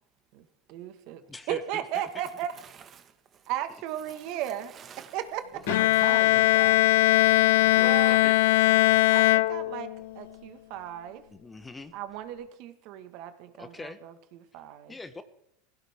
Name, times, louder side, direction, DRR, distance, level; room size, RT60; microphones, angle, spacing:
voice 1, 0.7-1.2 1.5-2.5 3.5-5.6 7.7-8.2 9.1-11.2 11.9-13.3 13.6-14.9, right 11 dB, 60° right, 1.6 m, -36 dB
voice 2, 1.3-2.2 7.7-8.4 11.3-11.9 13.6-14.0 14.9-15.2, left 3 dB, 15° left, 1.0 m, -43 dB
voice 3, 2.6-3.1 4.7-5.2 5.7-6.8, right 7 dB, 35° right, 1.6 m, -41 dB
Bowed string instrument, 5.7-10.1, left 18 dB, 75° left, 0.4 m, -21 dB
16.5 x 16.0 x 3.6 m
supercardioid pair, 115°, 0 cm